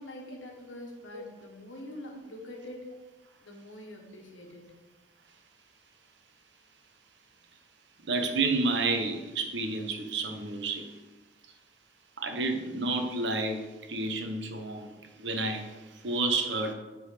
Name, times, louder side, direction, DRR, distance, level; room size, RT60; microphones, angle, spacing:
voice 1, 0.0-2.9 3.4-4.7, left 1 dB, 85° left, -1 dB, 1.3 m, -45 dB
voice 2, 8.0-11.0 12.2-16.7, right 3 dB, 70° right, 5 dB, 1.0 m, -30 dB
8.4 x 4.1 x 4.9 m, 1.2 s
head